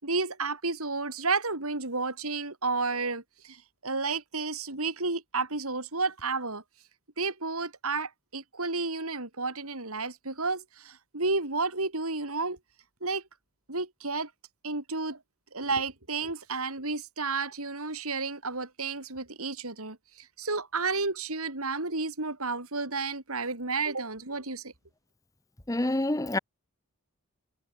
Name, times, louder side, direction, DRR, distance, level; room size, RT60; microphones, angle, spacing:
voice 1, 0.0-6.6 7.2-12.6 13.0-13.2 13.7-14.3 14.6-15.2 15.5-24.7, right 3 dB, 80° right, 4.6 m, -31 dB
voice 2, 25.7-26.4, left 1 dB, 15° left, 0.6 m, -27 dB
head